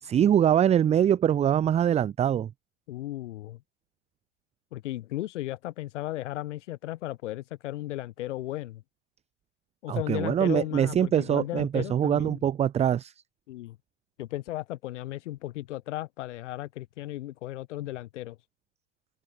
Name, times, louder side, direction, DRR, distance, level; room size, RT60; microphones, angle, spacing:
voice 1, 0.0-2.5 9.9-13.1, right 9 dB, 20° right, 0.8 m, -23 dB
voice 2, 2.9-3.6 4.7-8.8 9.8-12.4 13.5-13.8 14.2-18.4, left 15 dB, 75° left, 4.8 m, -35 dB
supercardioid pair, 140°, 36 cm